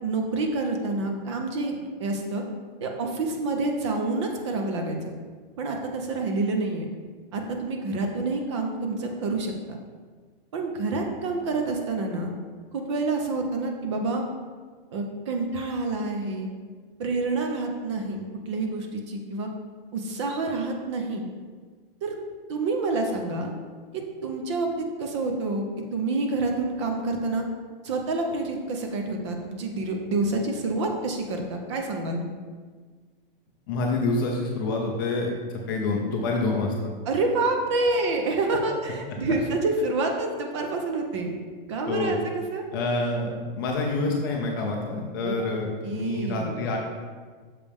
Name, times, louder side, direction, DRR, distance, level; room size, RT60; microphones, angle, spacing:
voice 1, 0.0-1.7 2.0-2.4 2.8-5.1 5.6-6.9 7.3-9.8 10.5-12.3 12.7-14.2 14.9-16.5 17.0-19.5 19.9-21.2 22.0-22.1 22.5-23.5 23.9-25.6 25.9-27.4 27.8-32.2 37.1-41.4 41.7-42.6 45.2-45.5 45.8-46.7, right 3 dB, 30° right, 3 dB, 0.6 m, -28 dB
voice 2, 33.7-36.9 41.9-42.2 42.7-46.8, left 3 dB, 25° left, 0 dB, 0.5 m, -27 dB
6.7 x 5.1 x 3.5 m, 1.5 s
hypercardioid pair, 170°, 29 cm